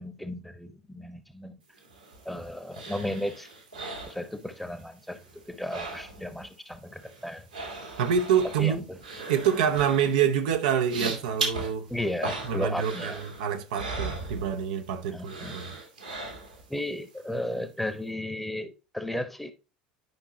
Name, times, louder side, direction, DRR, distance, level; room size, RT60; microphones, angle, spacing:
voice 1, 0.0-1.6 2.2-3.5 4.1-7.5 8.6-9.0 11.9-13.2 15.1-15.6 16.7-19.5, left 1 dB, 5° left, 1.1 m, -34 dB
sound 1, 1.8-4.8 5.1-6.5 6.7-14.9 15.2-16.8 17.2-17.3, right 3 dB, 85° right, 2.2 m, -38 dB
voice 2, 8.0-8.8 9.3-11.9 12.5-15.8, right 8 dB, 65° right, 0.8 m, -26 dB
10.5 x 5.6 x 2.9 m
figure-of-eight pair, 65°, 4 cm